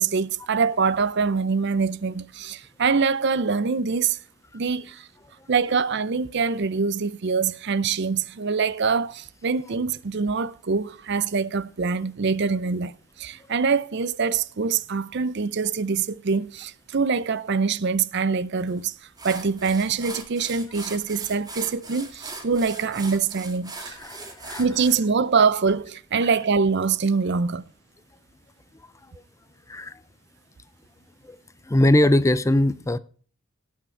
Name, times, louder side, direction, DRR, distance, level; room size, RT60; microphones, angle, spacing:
voice 1, 0.0-4.2 4.5-5.1 5.5-12.9 13.2-18.9 19.2-24.0 24.6-27.6, right 5 dB, 50° right, 0.5 m, -24 dB
sound 1, 18.7-18.8 19.2-25.0, right 3 dB, 15° right, 1.9 m, -39 dB
voice 2, 23.8-24.7 29.7-30.0 31.2-31.4 31.7-33.0, left 1 dB, 15° left, 0.4 m, -21 dB
17.5 x 6.6 x 4.4 m
head